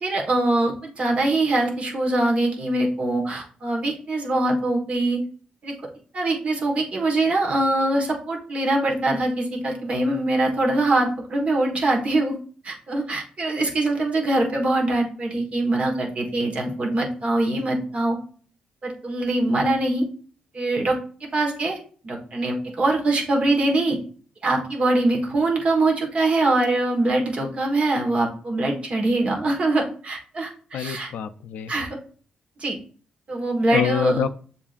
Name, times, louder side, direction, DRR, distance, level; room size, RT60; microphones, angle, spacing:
voice 1, 0.0-5.2 5.6-5.7 6.1-12.4 12.6-18.2 18.8-20.1 20.5-21.8 22.0-24.0 24.4-31.1 31.7-31.9 32.6-32.8 33.3-34.2, right 2 dB, 45° right, 0 dB, 1.4 m, -23 dB
voice 2, 30.7-31.7 33.7-34.4, left 8 dB, 90° left, 9 dB, 0.4 m, -26 dB
7.0 x 2.7 x 2.5 m, 0.43 s
cardioid pair, 90°, 3 cm